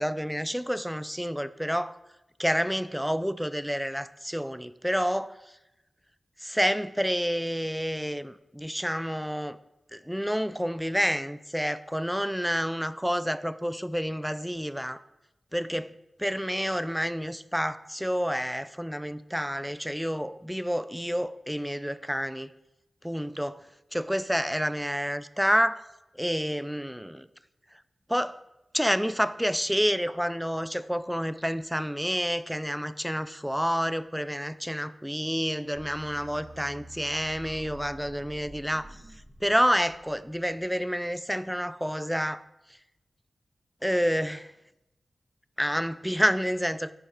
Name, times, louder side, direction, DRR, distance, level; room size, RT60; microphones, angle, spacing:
voice 1, 0.0-1.9 2.4-5.4 6.4-9.6 9.9-15.0 15.5-15.9 16.2-22.5 23.0-23.6 23.9-25.8 26.2-27.3 28.1-28.4 28.7-38.9 39.4-42.4 43.8-44.5 45.6-46.9, equal, ahead, 14 dB, 0.4 m, -29 dB
sound 1, 35.7-40.6, right 2 dB, 70° right, 2.6 m, -48 dB
10.5 x 8.5 x 4.5 m, 0.93 s
wide cardioid pair, 105°, 0 cm